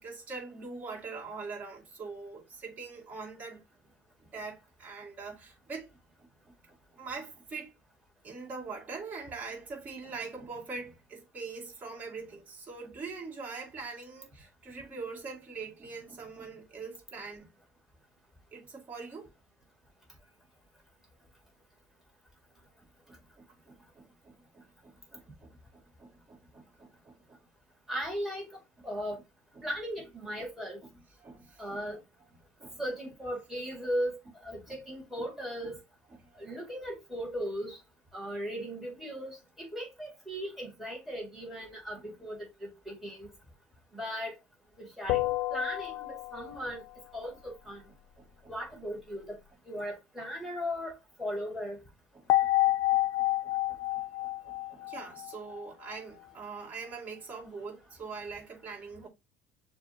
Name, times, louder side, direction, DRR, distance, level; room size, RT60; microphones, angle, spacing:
voice 1, 0.0-3.6 4.2-5.9 6.4-7.7 8.2-17.5 18.5-19.3 23.4-25.6 26.0-27.4 29.5-29.7 31.2-31.8 32.6-32.8 34.7-34.8 35.6-35.8 36.2-36.3 48.2-48.5 52.2-59.1, right 4 dB, 25° right, 2.2 m, -43 dB
voice 2, 27.9-28.5 28.8-29.2 29.6-30.8 31.6-32.0 32.8-35.8 36.4-37.8 38.1-43.3 43.9-44.4 44.8-46.8 47.1-47.8 48.5-49.4 49.7-51.8, equal, 5° right, 2.1 m, -37 dB
sound 1, 45.1-46.6 52.3-55.6, left 17 dB, 65° left, 0.4 m, -29 dB
6.7 x 2.6 x 2.8 m
cardioid pair, 150°, 6 cm